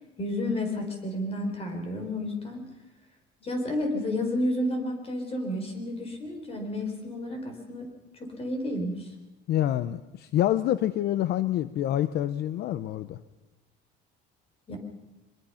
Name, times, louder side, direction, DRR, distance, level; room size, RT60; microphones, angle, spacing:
voice 1, 0.2-2.7 3.4-7.9 8.2-9.1 14.7-14.8, left 1 dB, 30° left, 4 dB, 4.5 m, -31 dB
voice 2, 9.5-13.2, left 12 dB, 60° left, 14 dB, 0.7 m, -27 dB
24.5 x 22.0 x 5.7 m, 1.0 s
cardioid pair, 140°, 19 cm